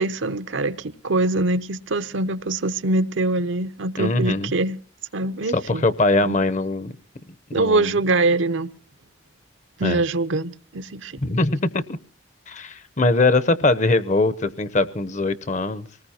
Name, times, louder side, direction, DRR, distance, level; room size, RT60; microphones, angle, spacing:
voice 1, 0.0-4.8 5.1-5.8 6.2-6.4 7.5-8.7 9.8-11.2, right 2 dB, 75° right, 0.7 m, -23 dB
voice 2, 4.0-4.5 5.5-6.9 7.5-7.9 9.8-10.0 11.2-11.8 12.5-15.9, left 2 dB, 35° left, 0.7 m, -21 dB
24.5 x 19.0 x 2.8 m
head